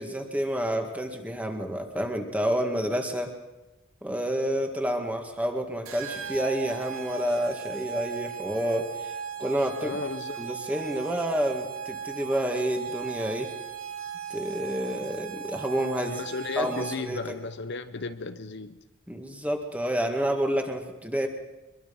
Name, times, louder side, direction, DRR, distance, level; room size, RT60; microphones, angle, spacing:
voice 1, 0.0-3.3 4.0-9.1 9.4-10.0 10.4-13.5 14.3-16.2 16.6-17.2 19.1-21.3, equal, 5° right, 2.1 m, -29 dB
sound 1, 5.9-17.2, right 8 dB, 80° right, 2.0 m, -37 dB
voice 2, 9.8-10.6 16.0-18.8, left 4 dB, 55° left, 0.8 m, -34 dB
24.0 x 22.0 x 5.6 m
head